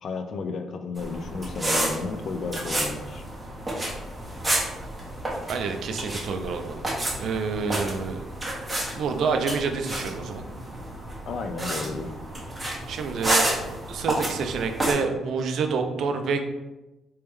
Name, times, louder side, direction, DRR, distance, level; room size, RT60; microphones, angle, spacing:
voice 1, 0.0-3.2 11.3-12.1, left 4 dB, 60° left, 7 dB, 0.4 m, -33 dB
sound 1, 1.0-14.9, right 1 dB, 15° right, 1.3 m, -30 dB
voice 2, 5.5-6.8 7.2-8.2 8.9-10.4 12.9-13.5 13.9-16.5, right 5 dB, 70° right, 6 dB, 0.5 m, -28 dB
3.4 x 3.1 x 3.1 m, 1.0 s
cardioid pair, 90°, 0 cm